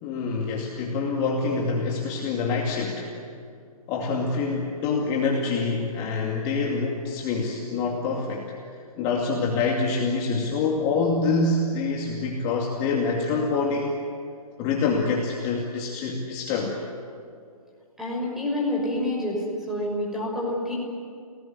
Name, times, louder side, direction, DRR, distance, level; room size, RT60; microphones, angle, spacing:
voice 1, 0.0-3.1 3.9-8.5 9.0-14.0 14.6-16.8, left 4 dB, 25° left, -1 dB, 2.5 m, -26 dB
voice 2, 18.0-20.8, left 1 dB, ahead, -3 dB, 6.2 m, -28 dB
29.5 x 19.0 x 9.6 m, 2.3 s
hypercardioid pair, 150°, 19 cm